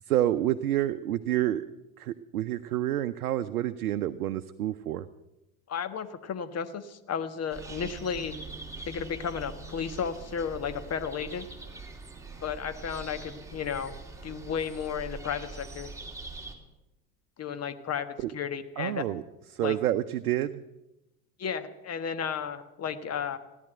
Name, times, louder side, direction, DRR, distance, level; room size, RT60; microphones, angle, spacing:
voice 1, 0.1-1.6 2.0-5.1 18.2-18.3 18.8-19.2 19.5-20.6, right 13 dB, 85° right, 9 dB, 0.7 m, -28 dB
voice 2, 5.7-8.4 8.8-11.5 12.4-13.9 14.2-15.9 17.4-19.0 19.6-19.8 21.4-23.4, left 7 dB, 35° left, 11 dB, 1.4 m, -33 dB
sound 1, 7.5-16.6, right 3 dB, 5° right, 2.8 m, -43 dB
16.5 x 11.0 x 7.8 m, 0.97 s
hypercardioid pair, 75°, 44 cm